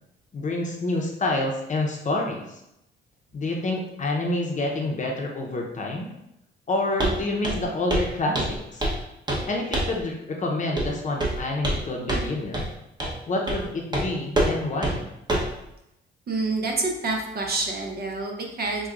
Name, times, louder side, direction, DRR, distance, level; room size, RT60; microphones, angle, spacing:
voice 1, 0.3-2.6 3.3-6.1 6.7-8.8 9.5-12.7 13.3-15.1, left 2 dB, 40° left, 0 dB, 0.8 m, -28 dB
Walk footsteps, 7.0-7.2 7.4-7.6 7.9-8.1 8.4-9.0 9.3-9.5 9.7-10.0 10.8-10.9 11.2-11.8 12.1-12.3 12.5-12.7 13.0-13.2 13.5-13.6 13.9-14.1 14.4-14.5 14.8-14.9 15.3-15.5, right 1 dB, 20° right, 1.1 m, -25 dB
voice 2, 16.3-18.9, right 3 dB, 50° right, 0 dB, 0.9 m, -27 dB
5.9 x 2.4 x 2.5 m, 0.84 s
cardioid pair, 90°, 20 cm